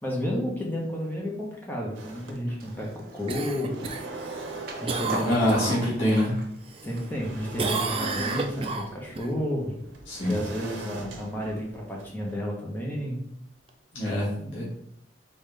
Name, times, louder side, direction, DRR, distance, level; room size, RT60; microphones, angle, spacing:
voice 1, 0.0-3.8 4.8-5.8 6.8-9.7 10.3-13.2, equal, 10° left, -2 dB, 0.9 m, -31 dB
sound 1, 1.9-2.9 3.4-6.3 6.8-12.4, right 2 dB, 80° right, 0.8 m, -41 dB
Skateboard, 2.6-7.8, equal, 50° right, 0.8 m, -42 dB
Cough, 3.3-6.3 6.7-7.3 7.6-9.3 13.7-13.8, right 4 dB, 30° right, 0.4 m, -32 dB
voice 2, 5.3-6.3 10.1-10.4 13.9-14.6, left 1 dB, 75° left, -8 dB, 1.7 m, -25 dB
3.9 x 3.9 x 3.3 m, 0.73 s
head